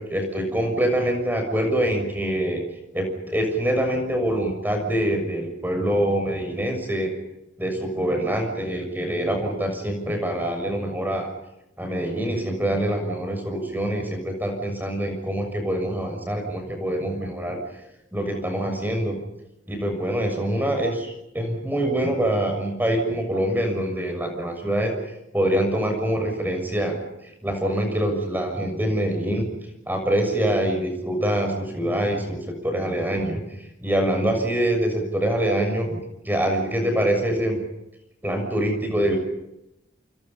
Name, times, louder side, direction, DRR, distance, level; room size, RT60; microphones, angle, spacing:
voice 1, 0.1-2.6 2.9-7.1 7.6-11.3 11.8-17.6 18.1-19.2 19.7-24.9 25.3-26.9 27.4-29.4 29.9-33.4 33.8-36.0 36.2-37.6 38.2-39.2, right 1 dB, 10° right, 3 dB, 6.6 m, -25 dB
28.5 x 28.0 x 5.6 m, 0.88 s
head